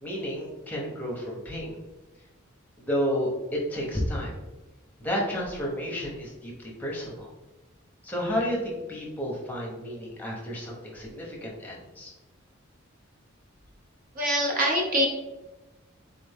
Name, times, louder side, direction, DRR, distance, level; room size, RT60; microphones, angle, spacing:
voice 1, 0.0-1.8 2.8-4.3 5.0-6.5 6.8-7.3 8.0-12.1, equal, 10° left, -3 dB, 0.9 m, -31 dB
voice 2, 14.2-15.1, equal, 40° right, 0 dB, 0.6 m, -24 dB
3.9 x 3.3 x 3.5 m, 1.1 s
head